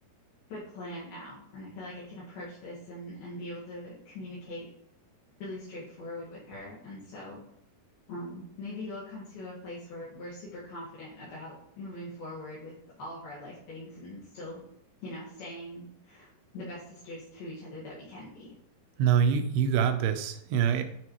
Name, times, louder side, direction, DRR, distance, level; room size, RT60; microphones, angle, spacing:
voice 1, 0.5-4.6 5.4-7.4 8.1-14.7 15.0-18.5, left 1 dB, 70° left, -8 dB, 3.5 m, -42 dB
voice 2, 19.0-20.8, right 8 dB, 85° right, 7 dB, 2.8 m, -25 dB
9.8 x 4.9 x 3.0 m, 0.76 s
omnidirectional pair, 4.6 m